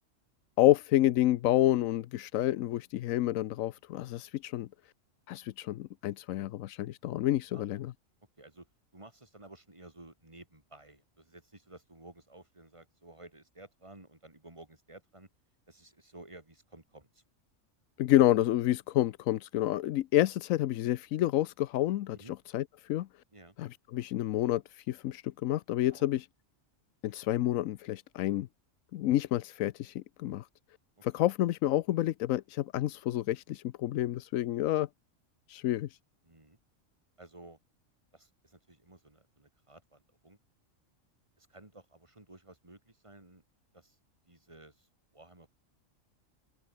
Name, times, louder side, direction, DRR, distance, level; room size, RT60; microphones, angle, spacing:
voice 1, 0.6-4.7 5.3-7.9 18.0-22.2 22.5-23.1 23.6-26.2 27.0-28.5 28.9-30.5 31.0-34.9 35.5-35.9, left 14 dB, 85° left, 1.0 m, -29 dB
voice 2, 8.4-15.3 15.7-17.2 22.2-22.3 23.3-23.6 25.9-26.0 31.0-31.1 36.2-36.6 37.2-37.6 38.1-40.4 41.4-43.4 43.7-44.0 44.3-45.5, right 2 dB, 20° right, 3.1 m, -54 dB
omnidirectional pair, 1.4 m